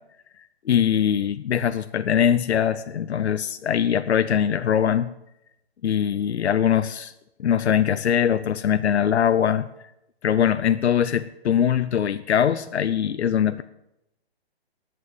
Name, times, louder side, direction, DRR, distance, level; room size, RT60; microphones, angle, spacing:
voice 1, 0.7-5.1 5.8-7.1 7.4-9.7 10.2-13.6, left 9 dB, 85° left, 11 dB, 0.7 m, -22 dB
9.6 x 8.8 x 9.1 m, 0.85 s
hypercardioid pair, 170°, 32 cm